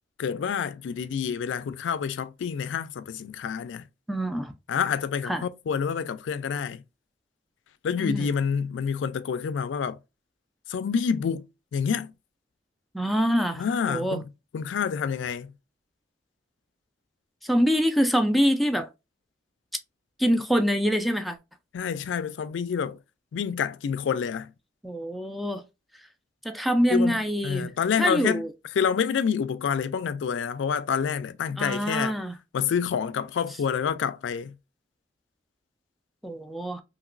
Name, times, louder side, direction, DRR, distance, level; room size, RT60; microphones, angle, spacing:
voice 1, 0.2-3.8 4.7-6.8 7.8-10.0 10.7-11.5 11.7-12.1 13.6-15.5 21.7-23.0 23.3-24.5 26.9-28.5 28.8-32.2 32.5-34.6, left 7 dB, 80° left, 0.3 m, -28 dB
voice 2, 4.1-4.5 5.2-5.4 8.0-8.3 12.9-14.2 17.4-18.9 20.2-21.4 24.8-25.6 26.4-27.7 28.0-28.5 31.6-32.3 36.2-36.8, equal, ahead, 0.3 m, -25 dB
2.9 x 2.9 x 2.4 m
head